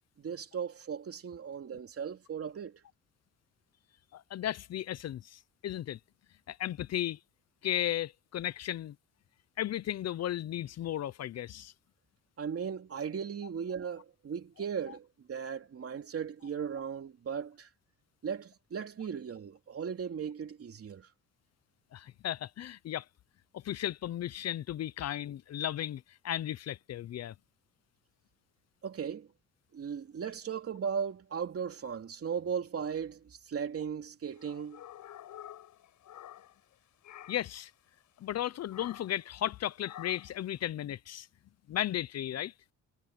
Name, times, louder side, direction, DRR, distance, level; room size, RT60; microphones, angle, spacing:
voice 1, 0.2-2.8 12.4-17.7 18.2-21.1 28.8-29.3 29.7-34.8, right 7 dB, 50° right, 3.0 m, -37 dB
voice 2, 4.1-6.0 6.5-7.2 7.6-9.0 9.6-11.7 21.9-23.1 23.5-27.3 37.3-37.7 38.2-41.3 41.7-42.5, left 12 dB, 55° left, 0.7 m, -35 dB
sound 1, 34.3-36.7 37.0-37.6 38.7-39.2 39.8-40.4, left 12 dB, 80° left, 7.5 m, -49 dB
cardioid pair, 90°, 30 cm